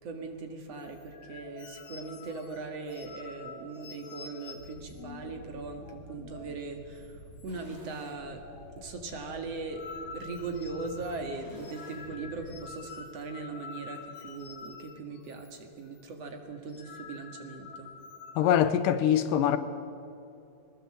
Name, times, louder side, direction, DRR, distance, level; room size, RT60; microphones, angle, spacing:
voice 1, 0.0-8.4 8.8-9.8 10.1-17.9, right 3 dB, 50° right, 2.7 m, -39 dB
sound 1, 0.7-6.7 7.0-7.1 7.4-7.9 8.2-15.6 15.8-16.1 16.5-18.5, left 5 dB, 65° left, 2.2 m, -48 dB
sound 2, 4.5-12.7, equal, 35° right, 7.2 m, -51 dB
voice 2, 18.4-19.6, left 10 dB, 80° left, 2.4 m, -23 dB
22.0 x 19.5 x 7.7 m
omnidirectional pair, 3.9 m